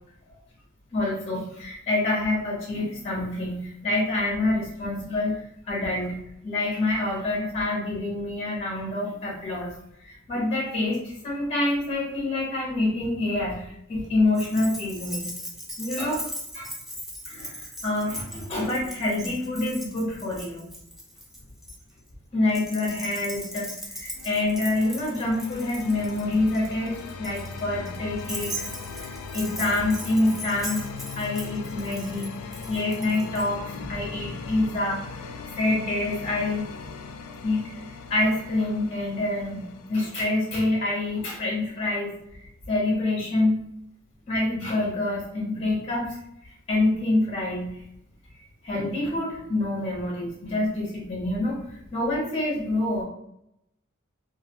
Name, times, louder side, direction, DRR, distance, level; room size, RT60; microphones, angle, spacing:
voice 1, 0.9-6.2 6.4-9.7 10.0-15.3 15.8-16.2 16.5-16.7 17.2-20.6 22.3-28.5 29.0-30.8 31.2-32.3 32.7-35.3 35.5-36.6 37.4-37.8 38.1-42.1 42.7-43.6 44.3-47.8 48.6-53.0, left 2 dB, 30° left, -4 dB, 0.7 m, -27 dB
Keys jangling, 14.3-21.8 22.5-33.5, equal, ahead, 0.3 m, -39 dB
sound 1, 24.2-41.9, left 4 dB, 90° left, 0.3 m, -40 dB
2.4 x 2.2 x 2.8 m, 0.80 s
head